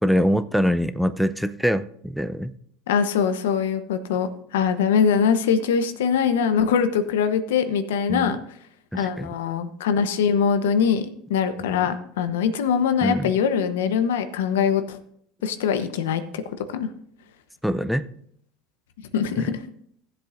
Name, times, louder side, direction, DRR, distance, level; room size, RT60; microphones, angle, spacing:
voice 1, 0.0-2.5 8.1-8.3 8.9-9.3 13.0-13.3 17.6-18.1 19.4-19.5, equal, ahead, 12 dB, 0.5 m, -24 dB
voice 2, 2.9-8.4 8.9-15.0 15.4-16.2 16.7-16.9 19.1-19.6, left 7 dB, 90° left, 10 dB, 0.9 m, -22 dB
16.0 x 7.7 x 2.5 m, 0.67 s
supercardioid pair, 110°, 0 cm